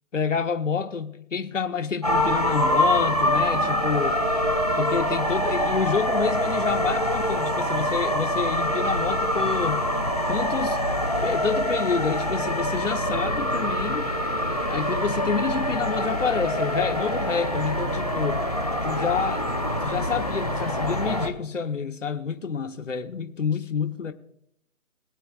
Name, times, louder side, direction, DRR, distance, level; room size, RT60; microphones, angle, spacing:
voice 1, 0.1-4.2 4.8-9.9 10.3-10.8 11.2-14.1 14.6-18.4 18.8-19.4 19.8-24.1, left 6 dB, 60° left, 1.1 m, -28 dB
sound 1, 2.0-21.3, equal, 25° left, 0.6 m, -25 dB
21.5 x 8.5 x 2.4 m
figure-of-eight pair, 170°, 43 cm